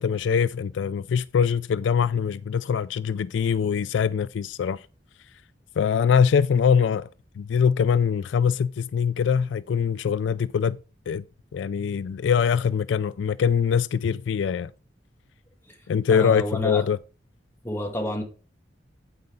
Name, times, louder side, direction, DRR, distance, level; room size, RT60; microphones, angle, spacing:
voice 1, 0.0-4.8 5.8-7.1 7.4-10.8 11.1-11.2 11.5-14.7 15.9-17.0, left 7 dB, 70° left, 0.3 m, -23 dB
voice 2, 16.1-16.8 17.6-18.2, left 1 dB, 15° left, 2.4 m, -29 dB
9.4 x 7.8 x 3.6 m
head